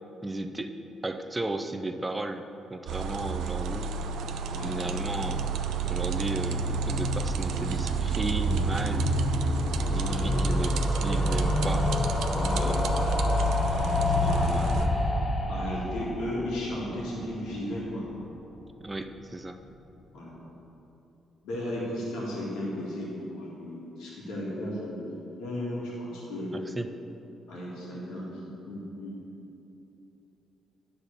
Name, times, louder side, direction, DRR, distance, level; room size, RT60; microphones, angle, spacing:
voice 1, 0.2-0.7 1.0-2.4 2.7-3.9 4.6-5.5 5.9-9.1 9.9-11.9 12.4-13.2 13.9-14.9 18.8-19.6 26.5-26.9, right 2 dB, 15° right, 7 dB, 0.5 m, -35 dB
sound 1, 2.9-14.9, right 3 dB, 80° right, 0.5 m, -29 dB
sound 2, 5.2-18.1 18.4-18.5 18.7-18.8 19.0-19.1, left 2 dB, 30° left, 0.7 m, -30 dB
voice 2, 12.3-12.8 14.2-14.5 15.5-18.1 20.1-20.4 21.4-26.5 27.5-29.4, left 1 dB, 90° left, -6 dB, 2.1 m, -35 dB
10.0 x 4.1 x 6.9 m, 3.0 s
cardioid pair, 90°, 0 cm